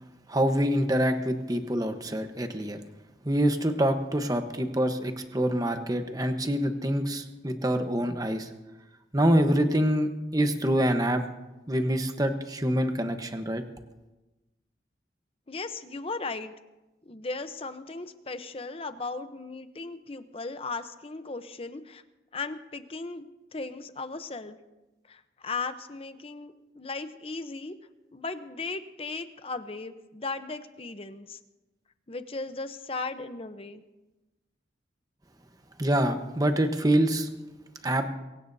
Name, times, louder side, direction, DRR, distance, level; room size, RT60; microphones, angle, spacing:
voice 1, 0.3-2.8 3.2-8.5 9.1-11.2 11.7-13.6 35.8-37.3 37.8-38.1, right 1 dB, 20° right, 6 dB, 1.1 m, -26 dB
voice 2, 15.5-16.5 17.0-22.0 22.3-23.3 23.5-24.6 25.1-27.8 28.1-31.4 32.1-33.8, left 3 dB, 35° left, 10 dB, 0.8 m, -37 dB
23.5 x 17.0 x 2.7 m, 1.1 s
head